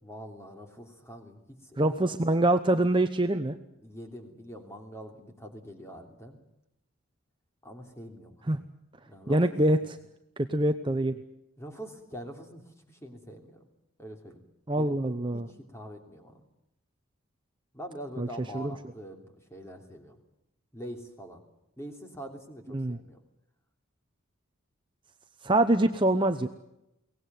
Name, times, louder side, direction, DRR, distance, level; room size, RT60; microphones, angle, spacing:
voice 1, 0.0-2.1 3.8-6.4 7.6-8.6 9.0-9.9 11.6-13.6 14.0-14.4 14.7-14.9 15.3-16.4 17.7-20.2 20.7-21.4 21.8-23.2, equal, 15° left, 4 dB, 3.1 m, -44 dB
voice 2, 1.8-3.6 8.5-8.6 9.3-10.0 10.5-11.2 14.7-15.5 18.2-18.3 18.5-18.7 22.7-23.0 25.4-26.5, right 1 dB, 25° right, 8 dB, 0.8 m, -25 dB
23.0 x 18.5 x 9.4 m, 0.85 s
head